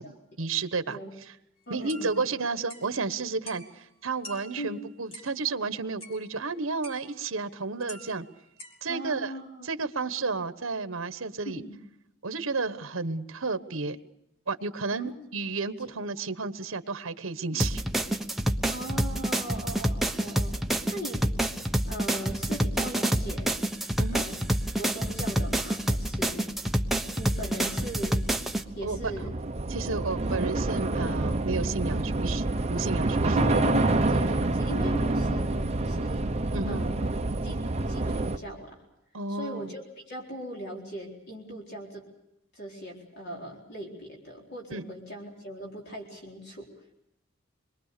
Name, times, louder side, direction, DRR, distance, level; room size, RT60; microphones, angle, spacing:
voice 1, 0.0-1.0 1.3-1.4 1.7-8.2 8.8-9.3 9.6-11.6 12.2-14.0 14.5-17.8 24.0-24.2 28.8-29.0 29.7-32.4 32.7-33.4 36.5-36.8 39.1-39.7 44.7-44.8, right 4 dB, 80° right, 11 dB, 1.2 m, -32 dB
voice 2, 1.7-2.2 4.6-4.8 8.9-9.7 11.5-11.8 14.9-15.1 15.8-15.9 17.5-17.7 18.7-20.6 20.9-21.2 21.9-23.5 24.1-24.4 24.7-26.5 27.2-28.2 28.8-29.3 33.2-37.1 37.4-37.6 37.9-38.8 39.3-42.1 42.5-46.7, equal, 50° left, -1 dB, 4.3 m, -39 dB
sound 1, 1.9-2.9 3.5-3.9 4.2-5.4 6.0-6.5 6.8-7.3 7.8-8.8, equal, 30° left, 3.5 m, -47 dB
sound 2, 17.6-28.6, right 1 dB, ahead, 1.0 m, -28 dB
Train / Subway metro underground, 25.7-38.4, right 2 dB, 30° right, 0.9 m, -28 dB
27.0 x 22.5 x 6.7 m, 0.83 s
head